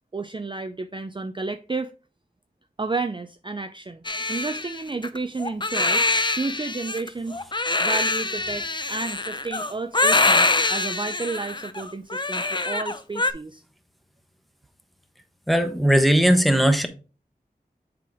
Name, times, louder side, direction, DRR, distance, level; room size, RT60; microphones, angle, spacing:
voice 1, 0.1-1.9 2.8-4.0 4.3-7.4 7.8-13.6, right 3 dB, 30° right, 0.4 m, -31 dB
Crying sobbing, 4.0-13.3, left 2 dB, 30° left, 0.6 m, -24 dB
voice 2, 15.5-16.9, equal, ahead, 1.0 m, -18 dB
7.4 x 3.7 x 3.5 m
wide cardioid pair, 40°, 17 cm